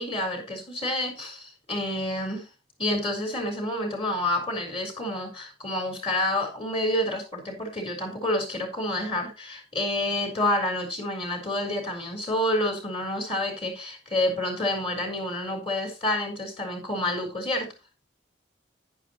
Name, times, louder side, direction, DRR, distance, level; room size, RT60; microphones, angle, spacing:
voice 1, 0.0-2.5 2.8-17.7, left 1 dB, 30° left, 4 dB, 4.1 m, -28 dB
11.0 x 10.5 x 3.0 m, 0.28 s
head